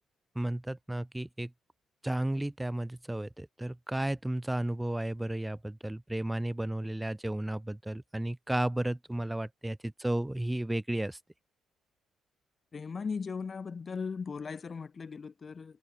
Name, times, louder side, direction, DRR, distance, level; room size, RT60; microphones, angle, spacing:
voice 1, 0.4-1.5 2.0-11.2, right 1 dB, 10° right, 3.4 m, -33 dB
voice 2, 12.7-15.8, left 5 dB, 40° left, 2.7 m, -38 dB
cardioid pair, 90°, 0 cm